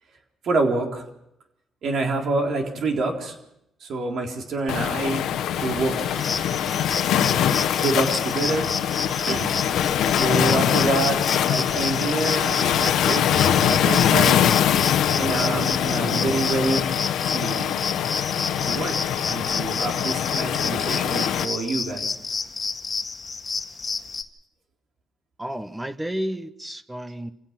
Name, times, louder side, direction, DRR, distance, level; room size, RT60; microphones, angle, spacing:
voice 1, 0.4-1.0 1.8-3.4 3.8-5.2 5.6-6.0 7.8-8.7 9.3-9.5 10.2-14.4 15.1-16.9 17.3-17.8 18.7-22.1, right 3 dB, 65° right, 2 dB, 3.8 m, -27 dB
Waves surf, 4.7-21.5, left 10 dB, 80° left, 1.2 m, -23 dB
sound 1, 5.5-12.0, right 3 dB, 40° right, 2.8 m, -42 dB
sound 2, 6.1-24.2, left 4 dB, 35° left, 1.7 m, -31 dB
voice 2, 25.4-27.3, equal, 10° right, 12 dB, 1.0 m, -31 dB
27.0 x 16.0 x 6.0 m, 0.83 s
cardioid pair, 90°, 0 cm